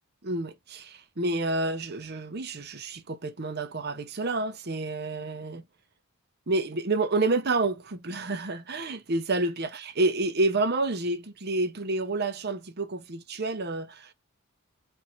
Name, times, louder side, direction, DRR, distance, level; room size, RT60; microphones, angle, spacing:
voice 1, 0.2-5.6 6.5-9.7 10.0-14.1, right 2 dB, 50° right, 0.9 m, -29 dB
4.4 x 2.8 x 3.9 m
head